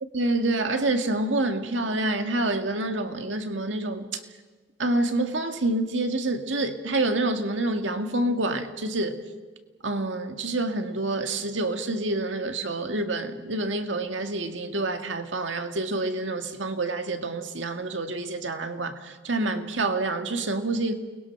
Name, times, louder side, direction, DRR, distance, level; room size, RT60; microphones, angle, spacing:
voice 1, 0.1-4.1 4.8-9.2 9.8-20.9, right 2 dB, 90° right, 1.9 m, -27 dB
29.5 x 21.0 x 6.0 m
head